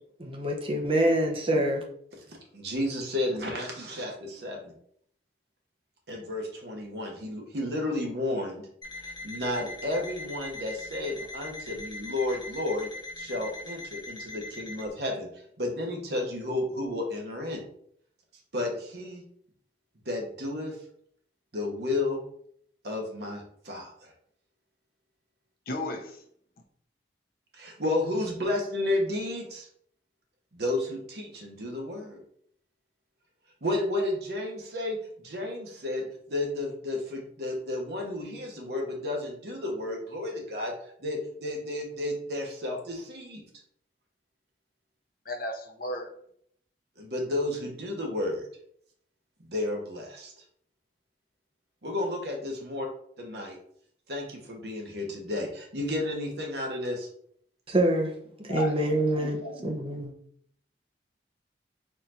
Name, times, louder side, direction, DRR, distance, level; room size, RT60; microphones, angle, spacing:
voice 1, 0.2-1.8 57.7-58.1 58.4-60.1, right 1 dB, 30° right, 1 dB, 0.7 m, -26 dB
voice 2, 2.3-4.7 6.1-8.7 9.0-12.9 13.2-17.6 18.5-19.2 20.0-20.8 21.5-22.2 22.8-24.1 27.5-29.7 30.5-32.2 33.6-40.7 41.0-43.4 47.0-48.5 49.4-50.3 51.8-52.9 53.2-53.6 54.1-57.1, left 1 dB, 65° right, 1 dB, 1.1 m, -32 dB
Alarm, 8.8-14.9, left 2 dB, 25° left, 0.8 m, -41 dB
voice 3, 25.7-26.2 45.3-46.1 58.5-58.7 59.1-59.6, left 1 dB, 50° left, 3 dB, 0.7 m, -34 dB
4.2 x 2.6 x 4.3 m, 0.66 s
head